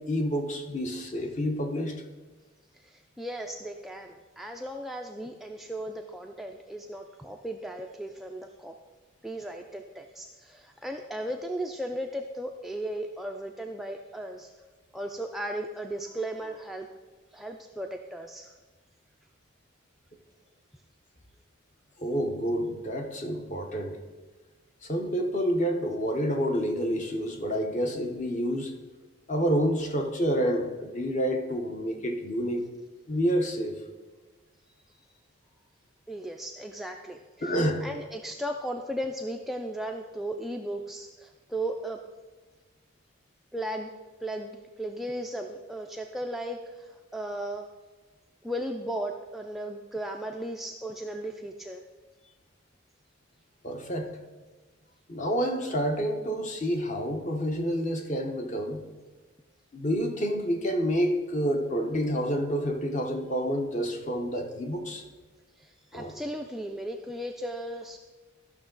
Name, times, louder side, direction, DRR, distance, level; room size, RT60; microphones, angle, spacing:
voice 1, 0.1-2.0 22.0-24.0 24.8-28.7 29.3-32.6 33.1-33.7 37.4-37.8 53.6-54.2 55.1-58.8 59.7-65.0 65.9-66.1, equal, 35° left, 4 dB, 0.9 m, -28 dB
voice 2, 2.7-8.8 9.2-14.5 14.9-16.9 17.3-18.5 36.1-37.5 37.8-42.0 43.5-43.9 44.2-47.7 48.4-51.8 65.6-68.0, right 1 dB, ahead, 2 dB, 0.3 m, -36 dB
13.5 x 6.1 x 3.9 m, 1.3 s
head